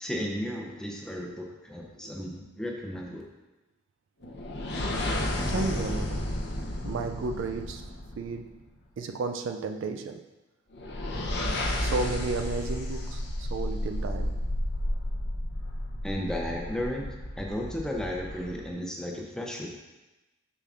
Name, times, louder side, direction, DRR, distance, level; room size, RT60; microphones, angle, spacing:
voice 1, 0.0-3.2 16.0-17.1 17.4-19.7, equal, 5° left, -1 dB, 0.7 m, -34 dB
sound 1, 4.2-8.6 10.7-18.7, left 1 dB, 55° left, 0.7 m, -32 dB
voice 2, 5.5-6.4 6.8-7.9 8.2-8.6 9.0-10.3 11.8-14.4, right 3 dB, 65° right, 6 dB, 0.3 m, -33 dB
6.8 x 5.7 x 2.5 m, 1.1 s
head